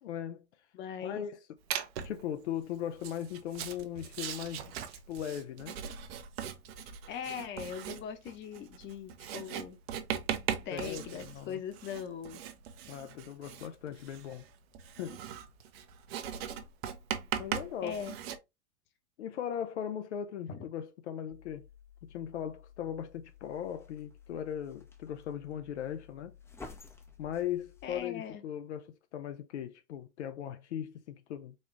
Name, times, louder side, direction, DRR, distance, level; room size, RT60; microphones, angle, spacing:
voice 1, 0.0-0.4 1.0-1.4 2.0-4.6 4.9-5.8 10.7-11.6 12.9-14.4 15.0-15.2 17.4-18.0 19.2-21.7 22.1-26.3 27.2-31.6, left 10 dB, 75° left, 0.6 m, -38 dB
voice 2, 0.7-1.3 7.1-9.8 10.6-12.4 17.8-18.2 20.5-20.7 27.8-28.4, left 7 dB, 35° left, 0.9 m, -40 dB
Writing, 1.7-2.2 2.9-18.4, right 9 dB, 60° right, 0.8 m, -39 dB
sound 1, 21.3-28.1, left 5 dB, 10° left, 0.5 m, -53 dB
4.2 x 2.3 x 3.1 m
hypercardioid pair, 100°, 35 cm